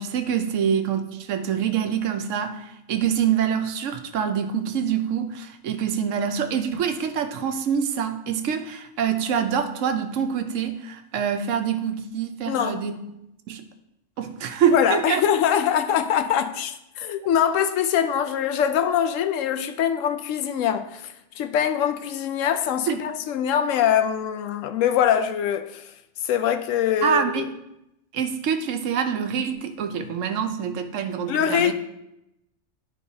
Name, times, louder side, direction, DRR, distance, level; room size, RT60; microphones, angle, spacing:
voice 1, 0.0-13.0 13.5-13.6 14.2-15.2 22.9-23.0 27.0-27.5 28.1-31.7, right 8 dB, 80° right, 1.0 m, -25 dB
voice 2, 12.5-12.8 14.7-25.8 26.2-27.4 31.3-31.7, left 9 dB, 85° left, 1.0 m, -23 dB
11.0 x 3.8 x 2.7 m
omnidirectional pair, 1.3 m